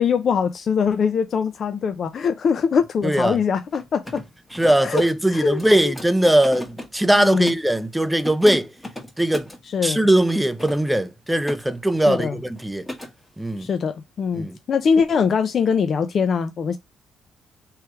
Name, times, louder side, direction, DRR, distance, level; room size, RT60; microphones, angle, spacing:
voice 1, 0.0-4.2 4.8-5.0 5.3-5.9 7.1-7.5 9.7-10.0 12.1-12.4 13.6-16.8, left 6 dB, 55° left, 0.4 m, -22 dB
voice 2, 3.0-3.4 4.5-8.7 9.2-9.5 9.8-12.9 13.4-13.7 14.4-14.6, right 1 dB, 5° right, 0.5 m, -20 dB
Mechanisms, 3.6-7.7 8.1-9.6 10.3-11.6 11.9-12.3 12.6-13.1, left 1 dB, 10° left, 1.4 m, -37 dB
3.2 x 3.0 x 4.6 m
cardioid pair, 90°, 0 cm